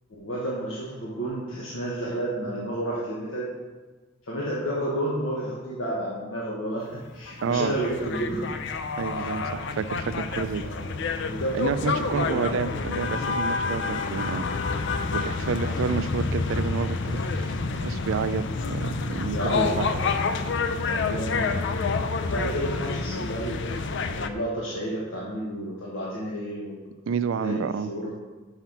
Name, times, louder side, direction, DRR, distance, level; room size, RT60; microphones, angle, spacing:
voice 1, 0.1-3.5 4.2-8.5 9.1-9.3 10.6-12.9 15.6-15.9 19.3-20.2 20.8-23.6 24.1-26.8 27.4-28.1, right 1 dB, 85° left, -5 dB, 1.3 m, -31 dB
sound 1, 7.3-24.3, left 4 dB, 65° left, 0.5 m, -28 dB
voice 2, 7.4-7.7 9.0-10.7 11.5-14.5 15.1-19.9 27.1-27.9, right 6 dB, 70° right, 14 dB, 0.4 m, -29 dB
5.8 x 5.7 x 5.8 m, 1.3 s
head